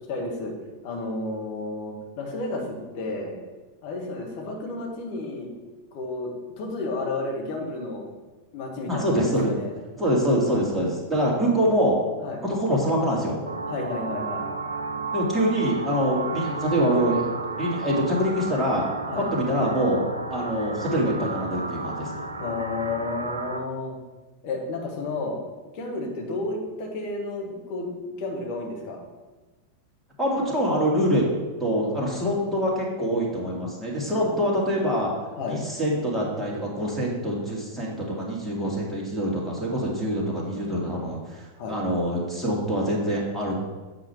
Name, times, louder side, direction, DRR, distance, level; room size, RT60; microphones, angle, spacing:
voice 1, 0.1-0.5 0.8-3.3 3.8-5.5 5.9-8.1 8.5-9.7 12.2-12.4 13.7-14.5 19.1-19.3 22.4-23.9 24.4-25.4 25.7-29.0 30.8-30.9 34.2-34.3 35.4-35.6 41.6-41.8, left 2 dB, 45° left, 0 dB, 1.8 m, -32 dB
voice 2, 8.9-9.5 10.0-12.0 12.4-13.4 15.1-17.3 17.5-18.8 19.3-20.0 20.3-22.1 30.2-31.2 31.6-35.1 35.5-43.6, equal, ahead, -6 dB, 2.3 m, -25 dB
sound 1, 13.5-23.6, right 3 dB, 80° right, 0.6 m, -33 dB
8.4 x 4.9 x 4.6 m, 1.2 s
figure-of-eight pair, 90°, 0 cm